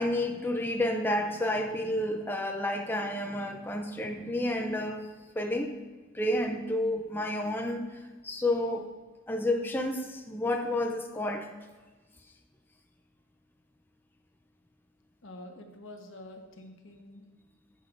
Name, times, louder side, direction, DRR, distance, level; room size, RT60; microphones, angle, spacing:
voice 1, 0.0-5.1 5.4-5.7 6.1-8.9 9.3-11.5, left 1 dB, 10° left, 3 dB, 0.5 m, -30 dB
voice 2, 15.2-17.2, left 1 dB, 70° left, 3 dB, 1.2 m, -47 dB
10.5 x 8.2 x 2.6 m, 1.3 s
head